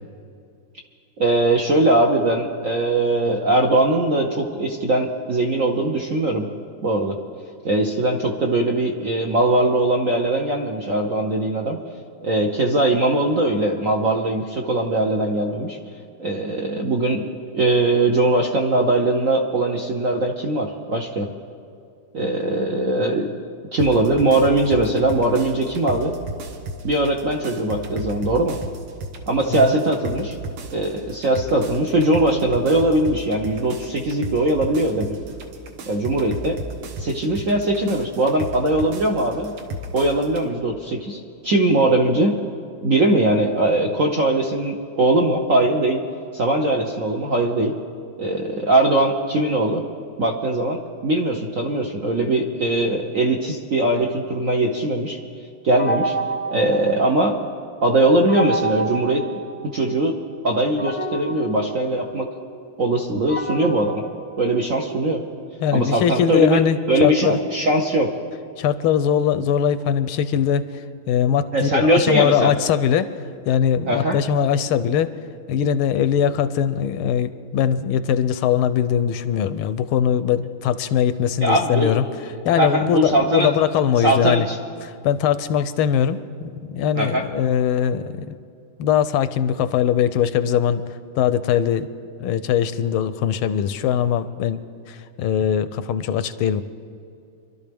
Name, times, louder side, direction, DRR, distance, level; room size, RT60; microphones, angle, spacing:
voice 1, 1.2-6.5 6.8-7.2 7.6-11.8 12.2-15.8 16.2-21.3 22.1-23.3 23.7-26.1 26.8-28.6 29.3-30.3 30.7-35.1 35.9-36.6 37.0-39.5 39.9-42.3 42.8-46.0 46.3-47.8 48.2-49.8 50.2-55.2 55.6-56.1 56.5-57.4 57.8-59.3 59.6-60.2 60.4-62.3 62.8-64.0 64.4-65.2 65.7-66.6 66.9-68.1 71.5-72.5 73.9-74.2 81.4-83.5 84.0-84.5 86.9-87.2, right 2 dB, 55° right, 1 dB, 0.9 m, -20 dB
sound 1, 23.8-40.5, right 1 dB, 75° right, 1.9 m, -34 dB
sound 2, 55.8-57.6 58.3-60.1 60.8-65.1, right 3 dB, 10° left, 0.7 m, -30 dB
voice 2, 65.6-67.4 68.6-73.1 73.5-75.1 75.5-82.0 82.4-84.5 84.8-88.4 88.8-90.8 91.1-91.9 92.2-94.6 94.9-96.6, left 9 dB, 80° left, 13 dB, 1.4 m, -21 dB
26.0 x 12.0 x 3.5 m, 2.4 s
omnidirectional pair, 2.4 m